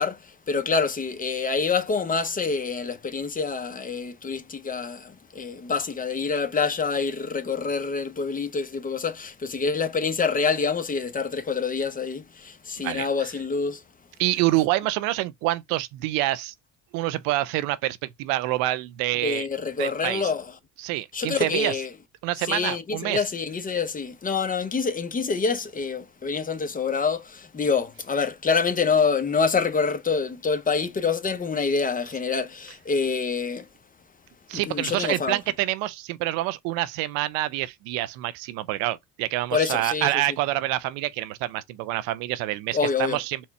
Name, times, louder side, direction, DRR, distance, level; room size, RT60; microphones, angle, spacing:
voice 1, 0.0-13.8 19.2-20.5 21.1-21.9 22.4-33.7 34.5-35.4 39.5-40.1 42.7-43.2, left 5 dB, 25° left, 0.9 m, -26 dB
voice 2, 14.2-16.5 16.9-19.5 19.8-20.3 20.8-21.8 22.2-23.2 34.5-43.4, right 16 dB, 80° right, 0.6 m, -27 dB
4.3 x 2.4 x 4.1 m
supercardioid pair, 90°, 34 cm